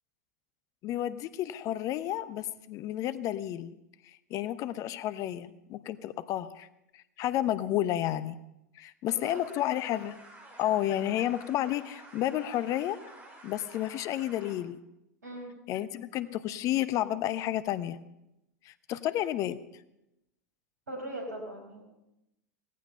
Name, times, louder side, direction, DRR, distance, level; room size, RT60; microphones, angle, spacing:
voice 1, 0.8-3.8 4.0-6.7 6.9-8.4 8.7-10.2 10.6-13.0 13.4-14.8 15.7-18.0 18.6-19.6, left 13 dB, 35° left, 15 dB, 0.8 m, -31 dB
voice 2, 9.0-9.5 15.2-15.5 20.9-21.8, right 1 dB, 75° right, 2 dB, 5.5 m, -40 dB
sound 1, 9.2-14.5, right 1 dB, 20° right, 5.4 m, -51 dB
17.5 x 15.0 x 5.5 m, 0.89 s
figure-of-eight pair, 90°, 9 cm